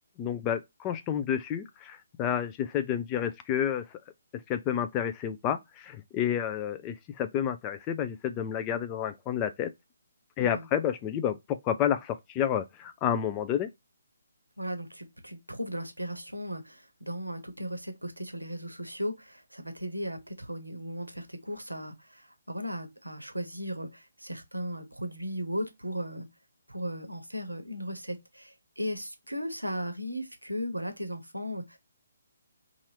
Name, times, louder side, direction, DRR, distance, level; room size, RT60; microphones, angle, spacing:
voice 1, 0.2-4.0 4.5-9.7 10.4-13.7, left 9 dB, 20° left, 0.4 m, -30 dB
voice 2, 14.6-26.3 26.7-31.8, equal, 90° right, 0.7 m, -36 dB
2.6 x 2.5 x 3.1 m
figure-of-eight pair, 140°, 0 cm